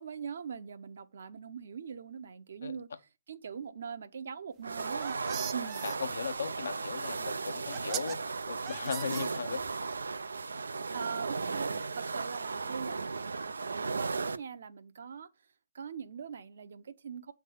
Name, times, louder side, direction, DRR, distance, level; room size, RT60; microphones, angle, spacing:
voice 1, 0.0-2.9 3.3-5.2 5.5-5.8 10.9-15.3 15.7-17.3, right 6 dB, 65° right, 1.0 m, -42 dB
sound 1, 4.6-14.4, right 4 dB, 85° right, 0.5 m, -36 dB
sound 2, 4.7-6.0 7.1-7.2 7.7-8.2 8.7-9.7, right 13 dB, 30° right, 0.5 m, -40 dB
voice 2, 5.8-9.7, left 6 dB, 75° left, 1.1 m, -37 dB
8.3 x 3.5 x 6.5 m
hypercardioid pair, 135°, 0 cm